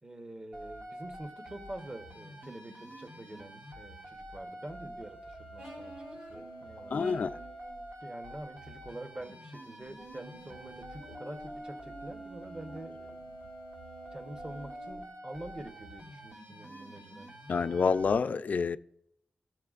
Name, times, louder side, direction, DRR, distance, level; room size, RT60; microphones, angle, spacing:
voice 1, 0.0-7.3 8.0-13.4 14.1-17.3, right 1 dB, 25° right, 1.0 m, -46 dB
sound 1, 0.5-18.2, right 1 dB, 85° right, 2.1 m, -47 dB
sound 2, 5.6-7.8 9.9-14.9, right 1 dB, 65° right, 3.8 m, -49 dB
voice 2, 6.9-7.3 17.5-18.8, left 5 dB, 55° left, 0.4 m, -28 dB
16.5 x 7.0 x 2.4 m
wide cardioid pair, 105°, 3 cm